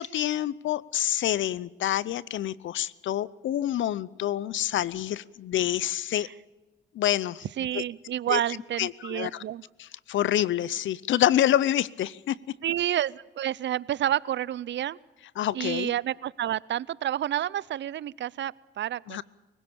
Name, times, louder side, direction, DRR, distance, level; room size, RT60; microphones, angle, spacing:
voice 1, 0.0-6.3 6.9-7.4 7.7-7.8 8.3-8.4 8.8-9.4 10.1-12.4 15.4-15.9 19.1-19.2, left 12 dB, 70° left, 21 dB, 0.7 m, -27 dB
voice 2, 7.6-9.6 12.6-15.0 15.5-19.2, right 11 dB, 65° right, 22 dB, 0.6 m, -29 dB
24.5 x 17.0 x 7.0 m, 1.1 s
cardioid pair, 70°, 20 cm